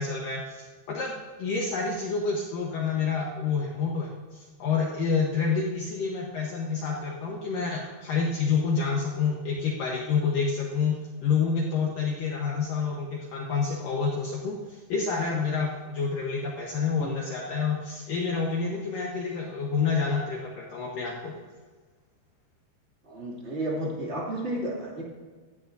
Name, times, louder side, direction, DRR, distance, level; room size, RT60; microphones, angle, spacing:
voice 1, 0.0-21.3, left 5 dB, 70° left, -2 dB, 2.0 m, -28 dB
voice 2, 23.0-25.0, right 1 dB, 25° right, -3 dB, 1.4 m, -32 dB
16.0 x 13.5 x 2.7 m, 1.4 s
omnidirectional pair, 5.4 m